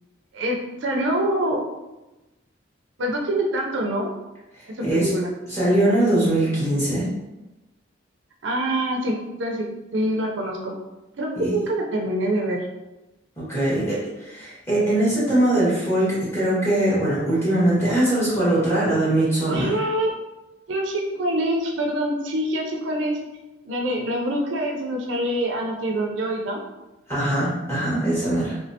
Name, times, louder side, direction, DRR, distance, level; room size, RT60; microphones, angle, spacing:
voice 1, 0.3-1.6 3.0-4.1 4.8-5.3 8.4-9.7 9.9-10.7 11.2-12.6 19.5-20.1 20.7-23.2 23.6-26.6, right 1 dB, 70° right, 0 dB, 0.5 m, -25 dB
voice 2, 5.5-7.1 11.4-11.5 13.4-19.7 27.1-28.6, right 1 dB, 15° left, -10 dB, 1.5 m, -21 dB
3.2 x 3.2 x 2.7 m, 1.0 s
head